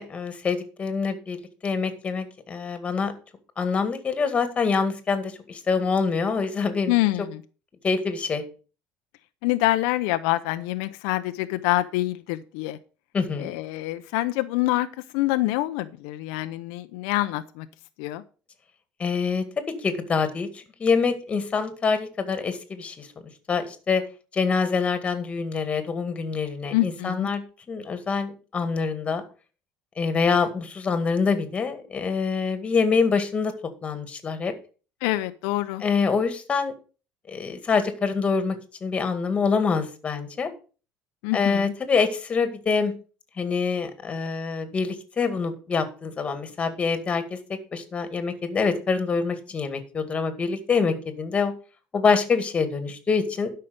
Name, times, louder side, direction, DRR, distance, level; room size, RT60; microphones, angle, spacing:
voice 1, 0.0-1.4 1.6-3.1 3.6-6.9 7.8-8.4 13.1-13.5 19.0-23.1 23.5-24.0 24.3-27.4 27.7-29.2 30.0-33.5 33.8-34.5 35.8-36.7 37.3-40.5 41.3-42.9 43.4-47.4 47.7-51.5 51.9-53.5, left 5 dB, 30° left, 9 dB, 2.0 m, -25 dB
voice 2, 6.9-7.4 9.4-12.8 13.4-14.9 15.1-17.7 18.0-18.2 26.7-27.3 35.0-35.8 41.2-41.7, left 17 dB, 85° left, 9 dB, 0.6 m, -26 dB
12.0 x 5.7 x 5.3 m, 0.36 s
cardioid pair, 115°, 4 cm